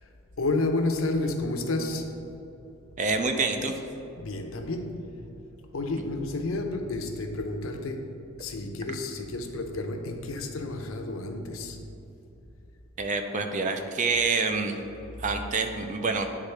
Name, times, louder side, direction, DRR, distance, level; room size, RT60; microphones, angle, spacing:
voice 1, 0.4-2.1 4.2-5.2 5.7-11.8, left 2 dB, 70° left, 5 dB, 0.6 m, -31 dB
voice 2, 3.0-3.7 13.0-14.8 15.2-16.3, right 4 dB, 35° right, 6 dB, 0.5 m, -27 dB
9.8 x 3.6 x 3.3 m, 2.8 s
head